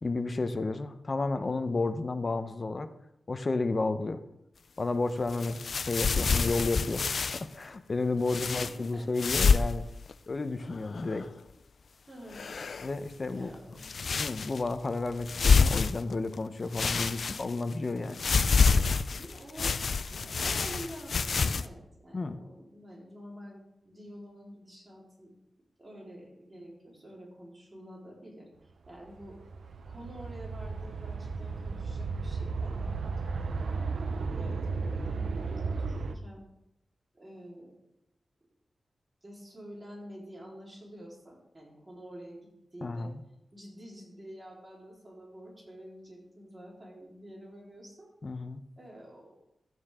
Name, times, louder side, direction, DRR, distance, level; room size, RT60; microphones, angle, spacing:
voice 1, 0.0-2.9 3.3-4.2 4.8-9.8 10.3-11.3 12.8-13.5 14.2-18.2 22.1-22.4 42.8-43.2 48.2-48.6, left 3 dB, 40° left, 10 dB, 0.8 m, -32 dB
sound 1, 5.3-7.4 8.3-8.7 9.2-9.8 10.1-10.2 10.6-11.3 12.3-13.0 13.8-14.7 15.2-16.3 16.7-17.7 18.1-21.7, left 5 dB, 65° left, 0.5 m, -27 dB
voice 2, 8.2-9.1 10.6-10.7 12.1-12.4 13.4-13.8 19.1-19.8 20.1-25.3 25.8-29.4 29.8-32.8 33.5-36.4 37.1-37.7 39.2-43.1 43.5-48.1 48.8-49.4, equal, 30° right, -4 dB, 4.1 m, -48 dB
sound 2, 28.9-36.1, right 4 dB, 85° right, 0.8 m, -34 dB
13.5 x 9.4 x 3.7 m, 0.84 s
wide cardioid pair, 90°, 0 cm